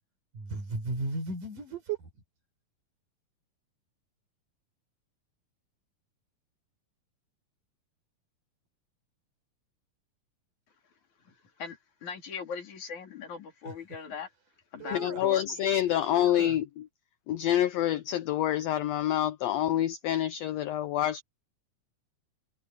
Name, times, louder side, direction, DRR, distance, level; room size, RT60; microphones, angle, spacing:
voice 1, 0.3-2.1 13.7-13.8 14.8-15.3 15.6-16.6, right 3 dB, 85° right, 7.7 m, -36 dB
voice 2, 12.0-14.3 14.7-15.4, left 6 dB, 65° left, 4.6 m, -39 dB
voice 3, 14.9-16.9 17.3-21.2, left 12 dB, 85° left, 1.5 m, -27 dB
omnidirectional pair, 3.6 m